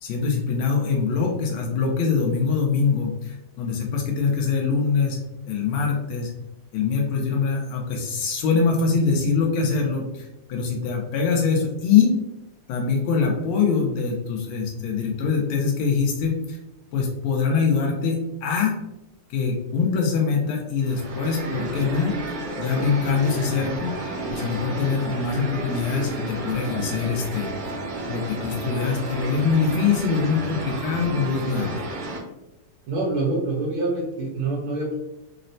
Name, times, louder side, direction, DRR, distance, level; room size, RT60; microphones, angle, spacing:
voice 1, 0.0-5.2 5.5-6.3 6.7-12.1 12.7-16.6 16.9-18.7 19.3-22.2 22.6-23.9 24.3-27.5 28.1-31.8, left 5 dB, 85° left, 0 dB, 1.5 m, -23 dB
sound 1, 20.8-32.2, right 2 dB, 90° right, 1.6 m, -32 dB
voice 2, 32.9-34.9, right 2 dB, 70° right, -3 dB, 1.3 m, -26 dB
4.1 x 2.0 x 2.6 m, 0.92 s
omnidirectional pair, 2.3 m